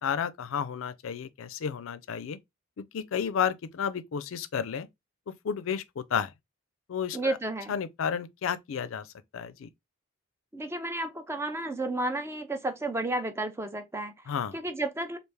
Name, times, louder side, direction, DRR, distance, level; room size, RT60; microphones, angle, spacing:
voice 1, 0.0-2.4 2.8-4.9 5.4-6.3 6.9-7.4 7.7-9.1 9.3-9.7 14.3-14.6, left 7 dB, 70° left, 0.4 m, -32 dB
voice 2, 7.1-7.7 10.5-14.1 14.5-15.2, right 2 dB, 10° right, 0.4 m, -32 dB
3.2 x 2.4 x 3.4 m
head